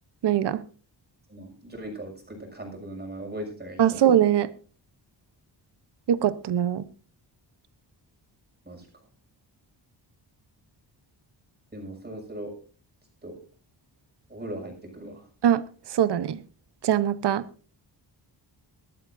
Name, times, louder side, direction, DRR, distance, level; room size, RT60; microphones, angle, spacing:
voice 1, 0.2-0.6 3.8-4.5 6.1-6.8 15.4-15.6 15.9-16.4 16.8-17.4, right 10 dB, 65° right, 0.9 m, -22 dB
voice 2, 1.3-4.0 8.6-8.9 11.7-12.5 13.2-13.4 14.3-15.3, right 1 dB, 20° right, 6.1 m, -38 dB
20.5 x 13.5 x 2.6 m
wide cardioid pair, 150°, 45 cm